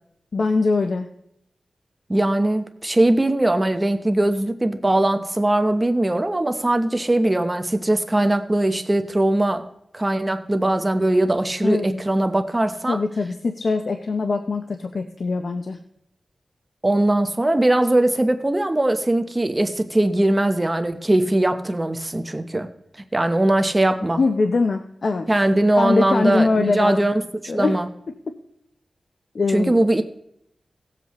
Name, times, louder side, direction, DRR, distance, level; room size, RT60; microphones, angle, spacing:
voice 1, 0.3-1.1 11.6-12.0 12.9-15.8 24.2-25.3 25.8-27.0 27.5-27.8 29.3-29.7, left 3 dB, 65° left, 6 dB, 0.7 m, -22 dB
voice 2, 2.1-9.6 9.9-13.0 16.8-22.7 23.1-24.2 25.3-27.2 27.5-27.9 29.5-30.0, right 1 dB, 20° right, 7 dB, 0.9 m, -20 dB
18.5 x 7.5 x 3.1 m, 0.75 s
wide cardioid pair, 80°, 0 cm